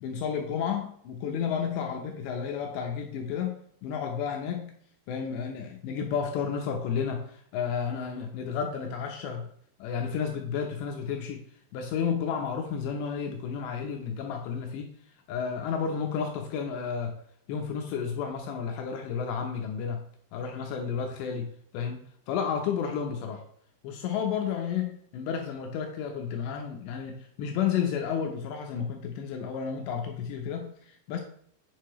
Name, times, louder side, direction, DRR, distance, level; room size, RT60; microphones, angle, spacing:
voice 1, 0.0-4.7 5.1-9.5 9.8-11.5 11.7-14.9 15.3-17.2 17.5-20.0 20.3-22.0 22.3-23.4 23.8-31.2, left 7 dB, 80° left, 3 dB, 2.7 m, -32 dB
8.3 x 6.5 x 3.1 m, 0.66 s
omnidirectional pair, 5.7 m